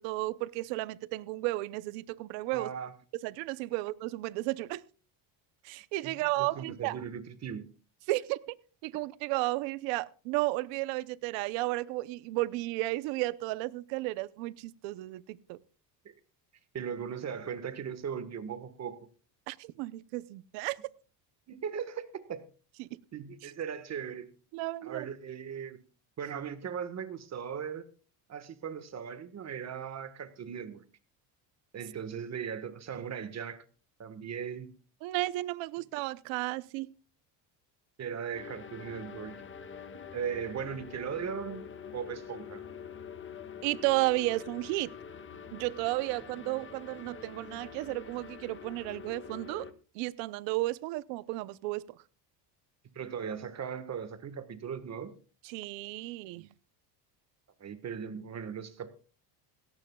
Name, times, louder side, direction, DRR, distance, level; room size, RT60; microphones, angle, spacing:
voice 1, 0.0-2.7 3.2-4.8 5.6-7.0 8.1-8.4 8.8-15.6 19.5-20.8 22.8-23.0 23.4-23.5 24.5-25.0 35.0-36.9 43.6-44.9 45.5-49.7 49.9-51.9 55.4-56.5, right 19 dB, 85° right, 0.9 m, -33 dB
voice 2, 2.5-2.9 6.0-7.7 16.0-16.1 16.7-19.0 21.5-22.4 23.1-24.3 24.8-25.8 26.2-27.9 28.3-30.8 31.7-33.6 34.0-34.7 38.0-39.4 40.1-42.6 52.9-55.1 57.6-58.9, right 7 dB, 35° right, 1.5 m, -38 dB
sound 1, 38.3-49.7, left 6 dB, 25° left, 1.6 m, -46 dB
18.0 x 17.0 x 2.3 m
cardioid pair, 125°, 43 cm